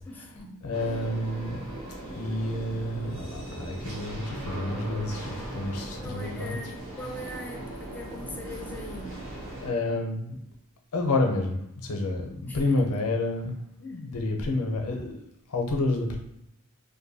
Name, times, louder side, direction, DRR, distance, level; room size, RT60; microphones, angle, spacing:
voice 1, 0.0-0.9 6.0-9.3 12.5-12.9 13.9-14.0, left 1 dB, 10° left, 0 dB, 0.4 m, -42 dB
voice 2, 0.6-1.6 2.2-6.6 9.6-10.4 10.9-15.2 15.5-16.2, left 2 dB, 75° left, 2 dB, 0.6 m, -29 dB
sound 1, 0.7-9.7, right 1 dB, 60° right, 0.7 m, -39 dB
2.6 x 2.2 x 2.7 m, 0.79 s
head